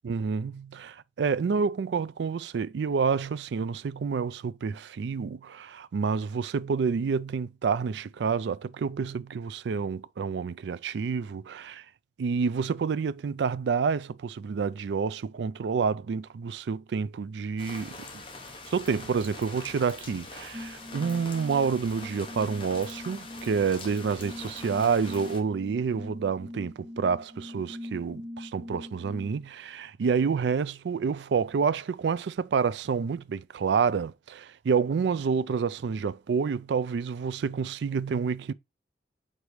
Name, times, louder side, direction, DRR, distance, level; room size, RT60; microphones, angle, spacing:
voice 1, 0.0-11.8 12.2-18.0 18.7-38.5, right 5 dB, 80° right, 0.4 m, -28 dB
sound 1, 17.6-25.4, left 3 dB, 30° left, 1.0 m, -44 dB
sound 2, 20.5-29.4, left 1 dB, 10° right, 0.6 m, -43 dB
4.8 x 4.1 x 4.9 m
head